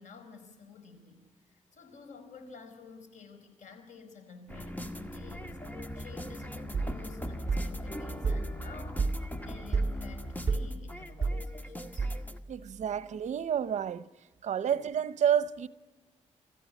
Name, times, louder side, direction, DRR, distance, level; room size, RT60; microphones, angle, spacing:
voice 1, 0.0-5.6 5.9-9.0 9.4-12.1 12.9-13.0, left 4 dB, 80° left, 4.9 m, -51 dB
sound 1, 4.5-12.4, equal, 15° left, 1.6 m, -41 dB
sound 2, 6.7-12.5, right 3 dB, 25° right, 2.6 m, -33 dB
voice 2, 12.5-14.1 14.4-15.7, right 9 dB, 70° right, 0.9 m, -29 dB
29.5 x 15.0 x 9.7 m
cardioid pair, 110°, 13 cm